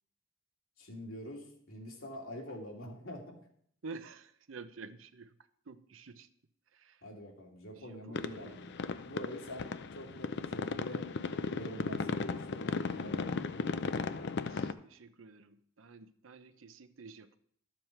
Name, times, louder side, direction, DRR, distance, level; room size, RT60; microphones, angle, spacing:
voice 1, 0.8-3.3 7.0-8.7 9.1-13.5, equal, 85° left, 0 dB, 2.4 m, -46 dB
voice 2, 3.8-5.3 5.7-6.3 6.7-7.0 7.8-8.6 14.1-17.4, right 4 dB, 70° right, 12 dB, 0.7 m, -50 dB
sound 1, 8.1-14.7, left 4 dB, 60° left, 0.5 m, -36 dB
12.5 x 7.1 x 4.5 m, 0.66 s
head